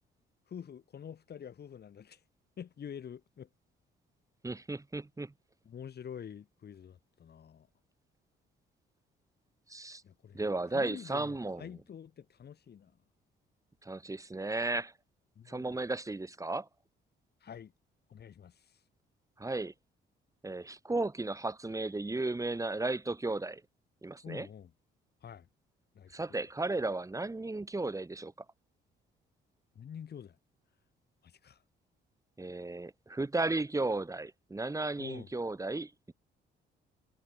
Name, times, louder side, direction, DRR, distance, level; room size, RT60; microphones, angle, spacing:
voice 1, 0.5-2.2 2.6-3.5 5.7-7.7 10.0-12.9 15.4-15.8 17.4-17.7 18.1-18.8 24.2-24.7 25.2-25.5 26.0-26.4 29.8-30.4 31.2-31.6 35.0-35.3, left 8 dB, 55° left, 5.3 m, -47 dB
voice 2, 4.4-5.3 9.7-10.0 10.3-11.7 13.8-14.9 15.5-16.7 19.4-19.7 20.4-23.6 24.0-24.5 26.1-28.3 32.4-36.1, right 2 dB, 15° right, 2.0 m, -34 dB
cardioid pair, 90°, 20 cm